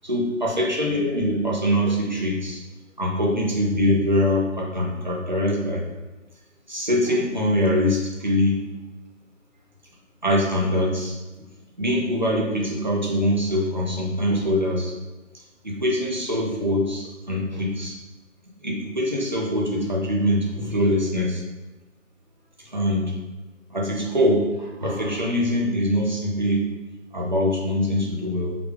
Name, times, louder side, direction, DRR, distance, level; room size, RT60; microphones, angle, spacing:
voice 1, 0.0-2.6 3.0-5.8 6.7-8.7 10.2-11.1 11.8-15.0 15.6-18.0 18.6-21.4 22.6-23.2 23.7-26.7 27.1-28.7, left 1 dB, 40° right, -2 dB, 0.4 m, -23 dB
3.3 x 2.2 x 3.2 m, 1.1 s
figure-of-eight pair, 165°, 39 cm